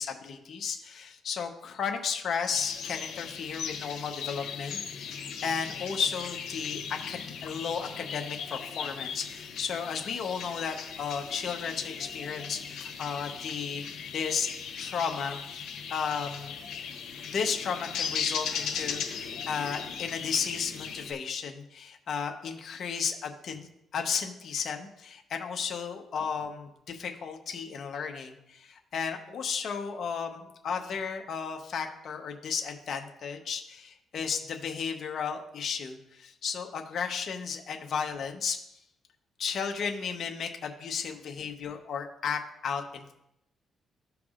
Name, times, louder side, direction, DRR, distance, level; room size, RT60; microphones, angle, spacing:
voice 1, 0.0-14.5 14.8-16.6 17.1-38.6 39.4-43.1, left 6 dB, 60° left, 3 dB, 0.9 m, -34 dB
sound 1, 2.5-21.1, left 7 dB, 85° left, 1.3 m, -38 dB
14.0 x 4.6 x 2.5 m, 0.82 s
cardioid pair, 90°, 0 cm